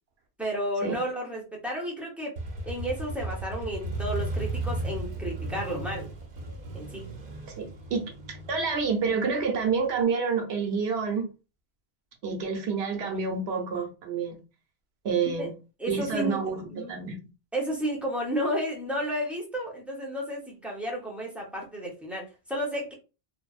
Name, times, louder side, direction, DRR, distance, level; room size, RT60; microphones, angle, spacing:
voice 1, 0.4-2.4 2.7-6.1 6.7-7.1 15.4-15.5 15.8-16.4 16.7-16.9 17.5-22.9, equal, ahead, 0.6 m, -32 dB
Motorcycle, 2.4-10.0, right 2 dB, 60° right, 0.8 m, -35 dB
voice 2, 7.6-8.1 8.5-11.3 12.2-14.4 15.0-15.5 15.9-17.2, right 5 dB, 90° right, 1.0 m, -28 dB
2.6 x 2.0 x 2.3 m
omnidirectional pair, 1.1 m